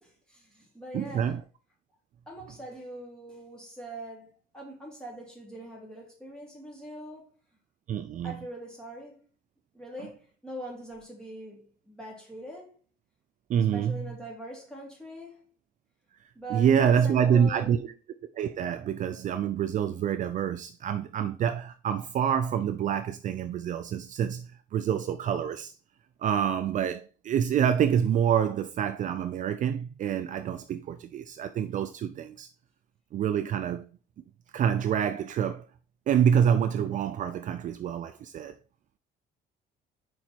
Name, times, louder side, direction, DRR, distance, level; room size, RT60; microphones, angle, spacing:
voice 1, 0.0-1.4 2.3-7.3 8.2-9.2 9.7-12.7 13.7-15.5 16.3-17.9, right 1 dB, 5° left, 3.1 m, -42 dB
voice 2, 0.9-1.4 7.9-8.3 13.5-14.0 16.5-17.9 18.4-25.7 26.2-32.5 33.1-33.8 34.5-35.6 36.1-38.5, right 8 dB, 50° right, 0.4 m, -27 dB
5.1 x 4.6 x 4.4 m
cardioid pair, 110°, 17 cm